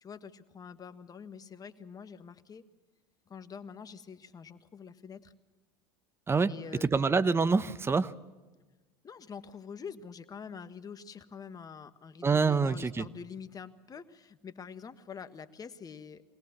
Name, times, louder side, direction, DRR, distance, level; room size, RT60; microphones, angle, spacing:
voice 1, 0.0-2.6 3.3-5.3 6.5-7.0 9.0-16.2, left 6 dB, 30° left, 11 dB, 1.5 m, -46 dB
voice 2, 6.8-8.1 12.2-13.1, right 4 dB, 20° right, 15 dB, 1.0 m, -26 dB
23.5 x 18.0 x 7.2 m, 1.2 s
hypercardioid pair, 80°, 12 cm